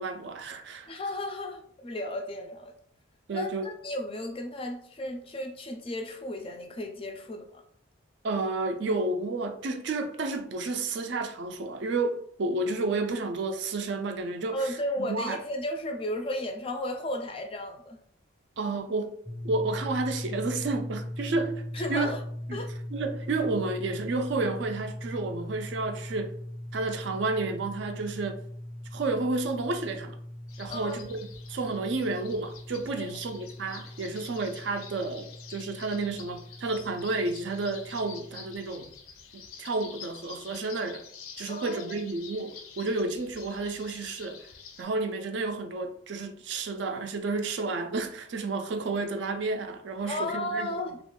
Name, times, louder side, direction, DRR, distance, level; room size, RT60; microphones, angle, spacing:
voice 1, 0.0-0.9 3.3-3.7 8.2-15.4 18.6-19.2 19.4-21.6 21.9-22.2 22.5-22.6 22.9-26.4 26.7-28.4 28.9-30.2 30.6-31.2 31.5-38.9 39.3-41.0 41.4-44.5 44.8-50.8, right 3 dB, 55° right, 0.4 m, -31 dB
voice 2, 0.9-2.7 3.3-7.6 14.5-18.0 21.7-22.2 22.5-22.7 30.7-31.0 33.0-33.1 41.5-42.0 50.1-51.0, left 1 dB, 25° left, 0.4 m, -34 dB
sound 1, 19.3-38.6, left 1 dB, 15° right, 0.6 m, -40 dB
sound 2, 30.5-44.8, left 6 dB, 90° left, 0.5 m, -48 dB
2.8 x 2.4 x 3.7 m
head